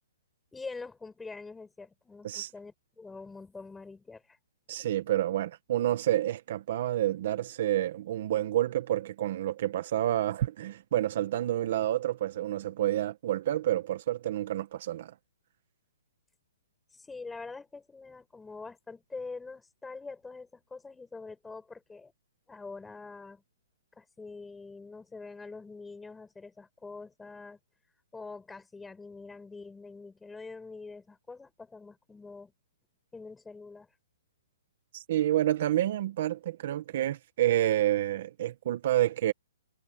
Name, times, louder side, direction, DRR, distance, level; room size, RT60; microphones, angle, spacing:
voice 1, 0.5-4.4 16.9-22.1 22.5-23.4 24.0-27.6 28.1-32.5 33.1-33.9, left 4 dB, 5° left, 5.9 m, -45 dB
voice 2, 4.7-15.1 34.9-39.3, right 13 dB, 45° right, 1.2 m, -29 dB
hypercardioid pair, 165°, 0 cm